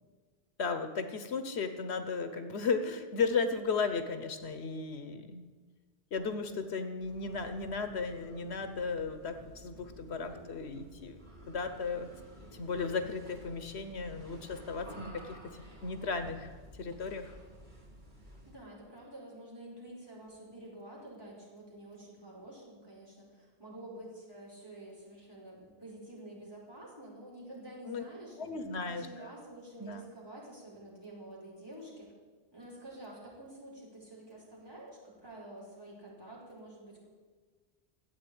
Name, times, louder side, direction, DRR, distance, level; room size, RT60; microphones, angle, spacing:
voice 1, 0.6-5.6 6.1-11.2 11.5-12.1 12.5-17.4 27.9-28.0 28.4-29.3 29.8-30.0, left 4 dB, 75° left, 9 dB, 1.2 m, -35 dB
sound 1, 6.9-18.7, right 1 dB, 45° right, 3.0 m, -52 dB
voice 2, 18.4-28.5 28.8-32.1 32.5-37.1, right 1 dB, 20° right, -6 dB, 4.9 m, -49 dB
14.0 x 8.4 x 8.8 m, 1.5 s
omnidirectional pair, 1.1 m